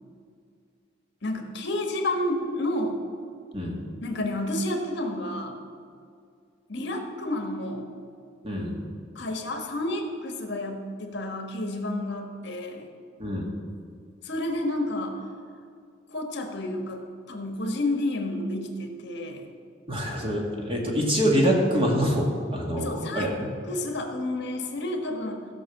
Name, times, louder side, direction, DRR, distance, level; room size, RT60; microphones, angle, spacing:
voice 1, 1.2-3.0 4.0-5.6 6.7-7.9 9.1-12.9 14.2-15.3 16.1-19.5 22.8-23.4 23.7-25.5, left 1 dB, 65° left, 4 dB, 1.4 m, -30 dB
voice 2, 8.4-8.8 13.2-13.4 19.9-23.5, equal, 30° right, -1 dB, 2.1 m, -25 dB
16.0 x 5.4 x 7.2 m, 2.3 s
head